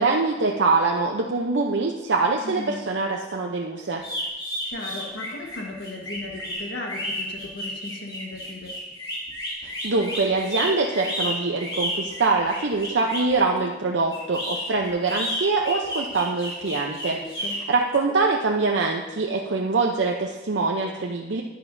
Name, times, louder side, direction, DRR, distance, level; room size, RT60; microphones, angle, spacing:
voice 1, 0.0-4.0 9.6-21.4, right 3 dB, 90° right, 0 dB, 0.7 m, -24 dB
voice 2, 2.4-2.8 4.6-8.7 17.1-17.5, left 2 dB, 85° left, 0 dB, 1.4 m, -36 dB
sound 1, 4.0-13.3 14.1-17.6, equal, 25° left, 2.8 m, -31 dB
11.0 x 10.5 x 2.7 m, 1.2 s
head